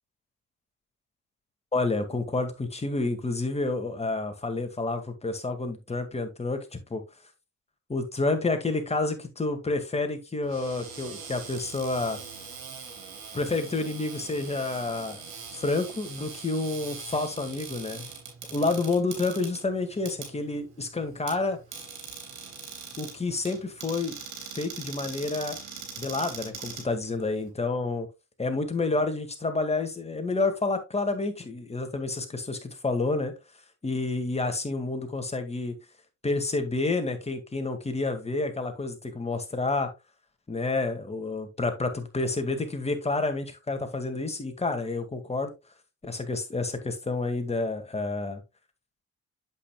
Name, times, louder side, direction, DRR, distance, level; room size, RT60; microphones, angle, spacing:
voice 1, 1.7-7.0 7.9-12.2 13.3-15.2 15.5-18.1 18.5-21.6 23.0-24.2 24.5-25.6 26.0-28.1 28.4-33.3 33.8-35.7 36.2-39.9 40.5-45.5 46.0-48.4, left 3 dB, 20° left, 2.0 m, -29 dB
Cupboard open or close, 10.4-27.5, right 6 dB, 80° right, 4.1 m, -42 dB
8.3 x 7.8 x 2.3 m
cardioid pair, 90°, 30 cm